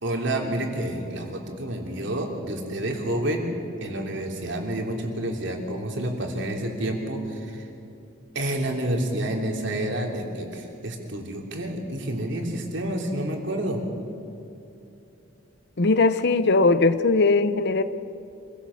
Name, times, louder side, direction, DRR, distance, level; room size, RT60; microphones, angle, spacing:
voice 1, 0.0-3.5 3.8-7.6 8.3-13.8, right 1 dB, 65° right, 2 dB, 3.2 m, -29 dB
voice 2, 15.8-17.8, left 3 dB, 60° left, 13 dB, 0.8 m, -19 dB
26.0 x 16.5 x 7.2 m, 2.8 s
head